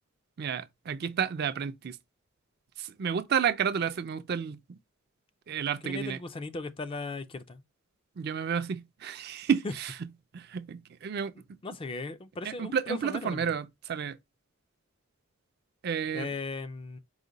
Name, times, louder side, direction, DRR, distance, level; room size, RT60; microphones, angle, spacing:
voice 1, 0.4-2.0 2.8-4.8 5.5-6.2 8.2-10.1 10.3-11.3 12.4-14.2 15.8-16.3, right 7 dB, 50° right, 0.4 m, -31 dB
voice 2, 5.8-7.6 11.6-13.5 16.1-17.0, left 3 dB, 25° left, 0.4 m, -37 dB
4.9 x 2.1 x 3.8 m
head